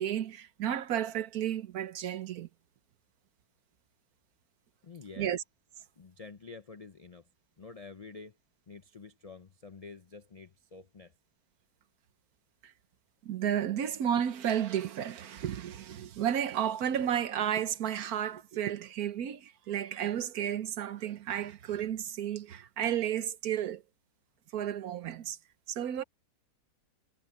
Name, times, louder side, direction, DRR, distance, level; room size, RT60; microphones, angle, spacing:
voice 1, 0.0-2.5 5.2-5.4 12.6-12.7 13.2-23.8 24.5-25.4 25.7-26.0, right 10 dB, 70° right, 1.3 m, -32 dB
voice 2, 4.8-5.3 6.0-7.2 7.6-8.3 8.7-11.1, left 4 dB, 55° left, 0.4 m, -48 dB
omnidirectional pair, 1.7 m